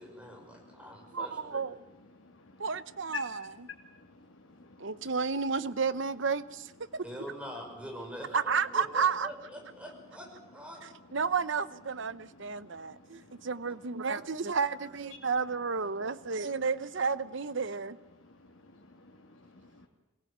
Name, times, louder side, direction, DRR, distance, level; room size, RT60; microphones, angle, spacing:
voice 1, 0.0-1.7 7.0-10.9, equal, 5° right, 1 dB, 5.8 m, -44 dB
voice 2, 1.1-1.8 2.6-3.7 4.8-7.0 8.3-9.3 11.1-18.0, right 5 dB, 65° right, 15 dB, 0.9 m, -32 dB
voice 3, 4.3-4.9 13.1-13.3 18.2-19.8, left 6 dB, 80° left, 0 dB, 2.4 m, -46 dB
23.0 x 18.5 x 8.8 m, 1.0 s
head